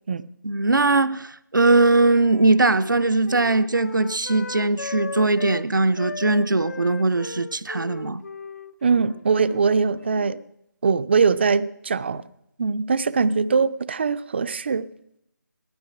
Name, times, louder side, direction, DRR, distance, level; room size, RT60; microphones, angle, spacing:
voice 1, 0.4-8.2, right 3 dB, 80° right, 0.7 m, -20 dB
Wind instrument woodwind instrument, 1.6-5.7 6.0-10.4, left 4 dB, 55° left, 0.5 m, -37 dB
voice 2, 8.8-10.4 10.8-12.2 12.6-14.9, right 5 dB, 35° right, 0.5 m, -21 dB
15.5 x 13.0 x 6.0 m
figure-of-eight pair, 155°, 10 cm